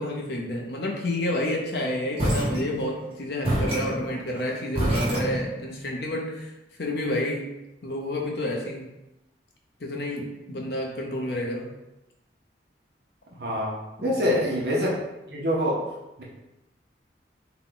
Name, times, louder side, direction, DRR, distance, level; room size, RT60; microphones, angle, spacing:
voice 1, 0.0-6.5 6.8-7.5 7.8-8.9 9.8-11.7 14.0-14.4, left 1 dB, 65° left, 0 dB, 0.8 m, -30 dB
sound 1, 2.2-3.1 3.4-5.8, right 1 dB, 30° right, 1.2 m, -27 dB
voice 2, 13.4-14.9 15.3-15.8, equal, 65° right, -4 dB, 0.8 m, -25 dB
3.9 x 2.3 x 3.9 m, 0.95 s
head